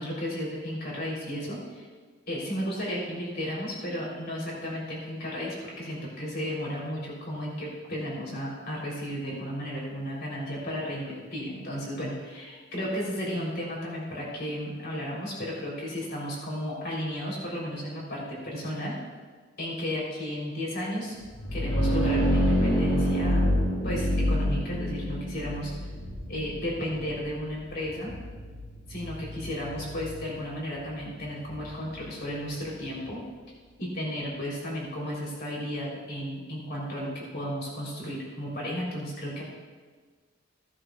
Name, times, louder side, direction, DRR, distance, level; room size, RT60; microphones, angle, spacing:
voice 1, 0.0-1.8 2.3-19.0 19.6-21.1 21.5-23.6 23.8-25.8 26.3-28.1 28.9-33.2 33.8-39.4, equal, 55° left, -4 dB, 3.3 m, -34 dB
sound 1, 21.2-32.8, equal, 80° left, 3.6 m, -28 dB
16.0 x 11.0 x 2.3 m, 1.5 s
head